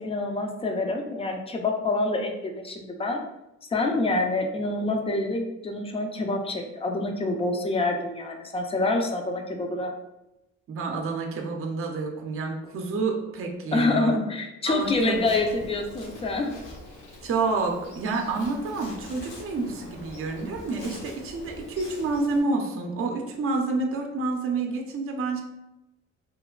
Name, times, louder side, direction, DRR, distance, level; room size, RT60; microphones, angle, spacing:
voice 1, 0.0-3.2 3.7-9.9 13.7-16.5, left 2 dB, 20° left, 3 dB, 0.4 m, -27 dB
voice 2, 10.7-14.2 14.7-15.2 17.2-25.4, right 3 dB, 45° right, 2 dB, 0.5 m, -29 dB
Insect, 14.8-22.4, left 2 dB, 80° left, 1.0 m, -44 dB
3.1 x 2.1 x 2.3 m, 0.92 s
cardioid pair, 90°, 30 cm